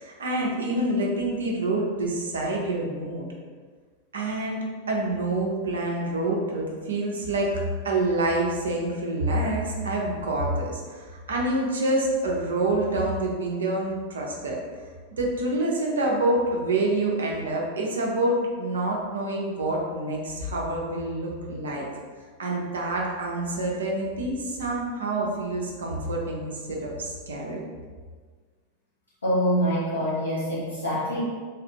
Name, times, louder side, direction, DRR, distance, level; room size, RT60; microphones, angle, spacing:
voice 1, 0.0-3.3 4.1-14.6 15.2-21.9 22.4-27.6, right 2 dB, 65° right, -1 dB, 0.6 m, -27 dB
voice 2, 29.2-31.2, equal, 75° left, -8 dB, 1.0 m, -25 dB
3.2 x 2.4 x 2.8 m, 1.5 s
figure-of-eight pair, 90°, 0 cm